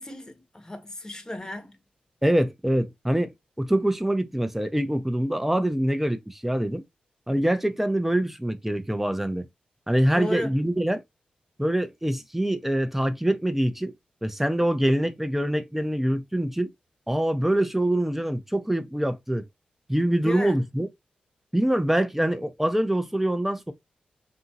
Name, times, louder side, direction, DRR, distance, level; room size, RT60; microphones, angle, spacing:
voice 1, 0.0-1.8 10.1-10.6 20.2-20.6, left 1 dB, 20° left, 0.9 m, -34 dB
voice 2, 2.2-6.8 7.3-9.4 9.9-11.0 11.6-13.9 14.2-16.7 17.1-19.5 19.9-20.9 21.5-23.7, right 1 dB, 5° right, 0.6 m, -24 dB
2.8 x 2.7 x 2.4 m
cardioid pair, 45°, 3 cm